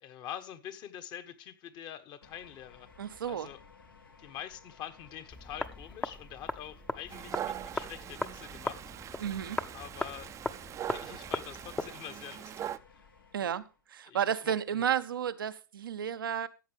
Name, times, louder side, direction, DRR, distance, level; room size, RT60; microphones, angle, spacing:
voice 1, 0.0-2.9 3.3-3.6 4.2-8.9 9.7-10.3 10.8-13.0 13.4-13.5 14.0-14.9, left 10 dB, 40° left, 1.3 m, -45 dB
sound 1, 2.2-13.8, left 5 dB, 90° left, 2.8 m, -58 dB
voice 2, 3.0-3.5 9.2-9.6 13.3-13.6 13.9-16.5, right 9 dB, 80° right, 0.7 m, -32 dB
sound 2, 5.3-11.9, left 2 dB, 10° left, 0.7 m, -39 dB
Dog, 7.1-12.8, right 11 dB, 25° right, 0.5 m, -42 dB
14.0 x 8.0 x 3.4 m
hypercardioid pair, 105°, 11 cm